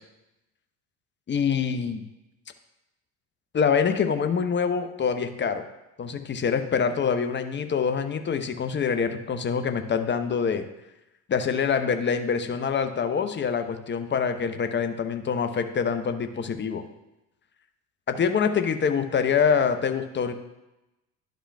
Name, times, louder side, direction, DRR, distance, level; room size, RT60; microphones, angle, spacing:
voice 1, 1.3-2.0 3.5-5.6 6.0-10.7 11.3-16.8 18.1-20.3, left 6 dB, 25° left, 9 dB, 0.8 m, -25 dB
11.5 x 5.1 x 2.3 m, 0.96 s
hypercardioid pair, 70°, 44 cm